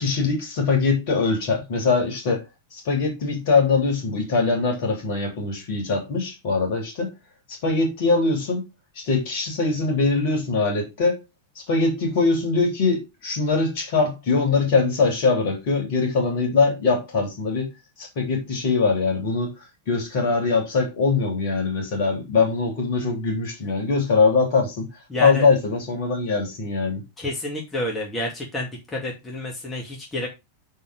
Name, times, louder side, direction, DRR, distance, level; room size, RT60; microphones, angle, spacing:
voice 1, 0.0-2.4 2.7-7.1 7.5-8.6 8.9-11.2 11.5-17.7 18.0-19.5 19.9-24.9 25.2-27.0, left 4 dB, 50° left, 3.3 m, -22 dB
voice 2, 25.1-25.5 27.2-30.3, left 1 dB, 15° left, 2.3 m, -29 dB
6.7 x 4.5 x 5.2 m
figure-of-eight pair, 90°, 0 cm